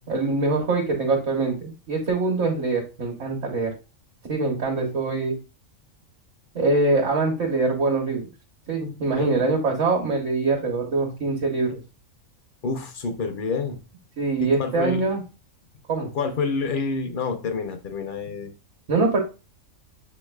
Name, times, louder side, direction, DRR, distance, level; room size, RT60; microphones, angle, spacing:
voice 1, 0.1-3.7 4.3-5.3 6.5-8.3 8.7-11.8 14.2-15.2 15.9-16.1 18.9-19.2, right 3 dB, 65° right, 0 dB, 1.3 m, -23 dB
voice 2, 9.2-9.5 12.6-13.8 14.4-15.1 16.1-18.5, left 4 dB, 50° left, 6 dB, 0.6 m, -28 dB
6.7 x 3.1 x 2.2 m, 0.32 s
omnidirectional pair, 1.4 m